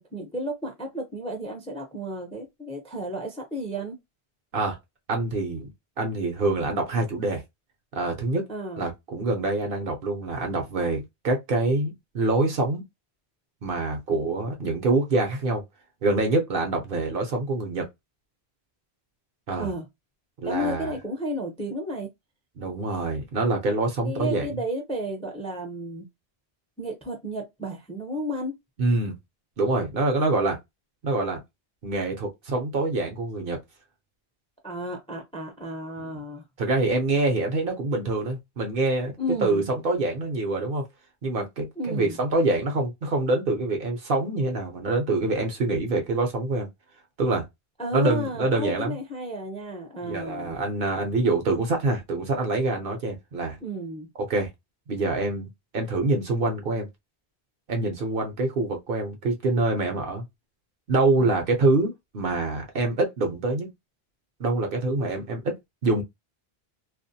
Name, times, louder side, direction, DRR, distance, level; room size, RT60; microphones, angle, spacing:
voice 1, 0.0-4.0 8.5-8.8 19.6-19.8 20.5-22.1 24.0-26.1 26.8-28.5 34.6-36.4 39.2-39.7 41.8-42.2 47.8-50.6 53.6-54.1 61.1-61.3, equal, 10° left, 0.5 m, -32 dB
voice 2, 5.1-5.7 6.0-7.4 7.9-8.4 8.8-12.8 13.6-15.6 16.0-17.8 19.5-19.7 20.4-20.9 22.6-24.5 28.8-29.1 29.6-30.6 31.0-31.4 31.8-33.6 36.0-36.2 36.6-39.1 39.4-40.8 41.2-46.7 47.2-47.4 47.9-49.0 50.0-53.6 54.3-54.5 54.9-56.9 57.7-60.2 60.9-63.7 64.4-65.6 65.8-66.0, right 2 dB, 60° right, 0.9 m, -25 dB
2.4 x 2.1 x 2.6 m
omnidirectional pair, 1.1 m